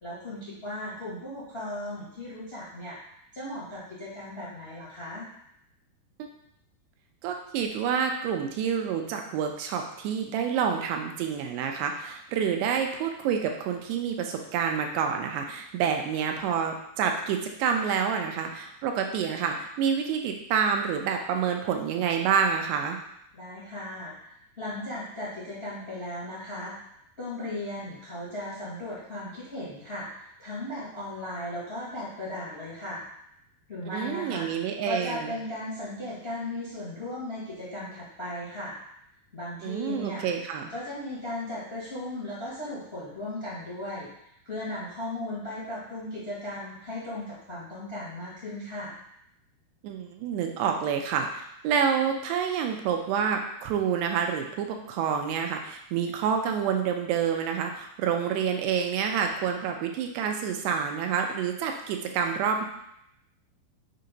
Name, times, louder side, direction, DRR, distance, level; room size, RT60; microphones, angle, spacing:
voice 1, 0.0-3.0 3.3-5.3 23.3-24.1 24.6-26.7 27.2-33.0 33.7-34.5 34.8-38.8 39.3-40.2 40.7-44.1 44.4-49.0, left 1 dB, 45° left, -9 dB, 0.7 m, -36 dB
voice 2, 7.2-23.0 33.9-35.3 39.6-40.7 49.8-62.7, right 7 dB, 85° right, 3 dB, 2.7 m, -28 dB
6.7 x 2.8 x 5.1 m, 0.75 s
omnidirectional pair, 4.9 m